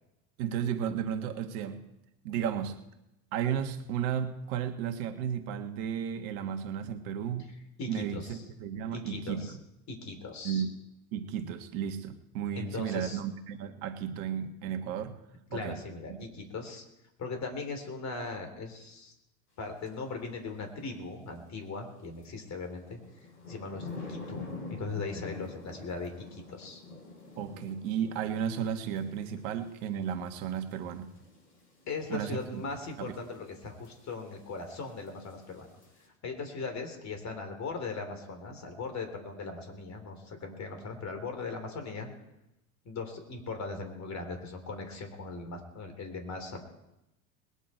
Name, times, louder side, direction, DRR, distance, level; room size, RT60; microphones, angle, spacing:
voice 1, 0.4-1.8 2.2-2.8 3.3-7.5 7.9-9.6 10.4-10.7 11.1-15.2 15.5-15.8 16.1-16.2 27.4-31.1 32.1-32.6 33.0-33.1, right 8 dB, 60° right, 6 dB, 1.6 m, -34 dB
voice 2, 7.8-8.4 8.9-9.6 9.9-10.7 12.5-13.2 15.5-16.8 17.2-19.1 19.6-26.8 31.9-35.7 36.2-42.1 42.9-46.6, left 4 dB, 35° left, 5 dB, 3.7 m, -39 dB
sound 1, 19.8-19.9 22.2-36.1, left 3 dB, 85° left, 5.8 m, -47 dB
21.0 x 9.9 x 4.5 m, 0.89 s
hypercardioid pair, 90°, 46 cm